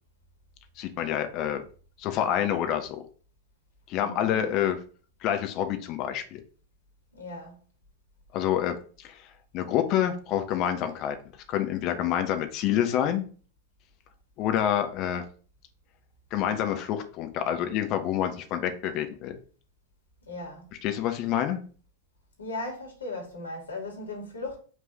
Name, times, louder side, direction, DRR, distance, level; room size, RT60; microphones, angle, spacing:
voice 1, 0.8-1.6 2.0-3.0 3.9-4.8 5.2-6.4 8.3-9.2 9.5-11.2 11.5-13.2 14.4-15.2 16.3-19.4 20.8-21.6, left 10 dB, 40° left, 1.2 m, -27 dB
voice 2, 4.0-4.5 7.1-7.6 20.3-20.7 22.4-24.6, left 2 dB, 75° left, 2.7 m, -37 dB
6.1 x 3.8 x 5.9 m
figure-of-eight pair, 90°, 0 cm